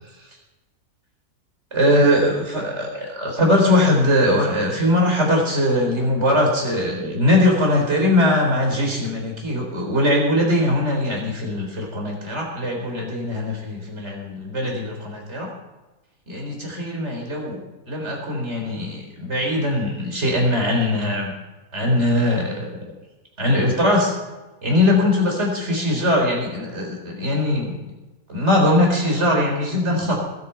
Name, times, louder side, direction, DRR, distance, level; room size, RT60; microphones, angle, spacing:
voice 1, 1.7-15.5 16.3-17.6 17.9-21.3 21.7-22.9 23.4-24.1 24.6-27.8 28.3-30.2, left 1 dB, 45° right, 0 dB, 4.2 m, -21 dB
20.0 x 8.8 x 5.7 m, 1.1 s
omnidirectional pair, 1.6 m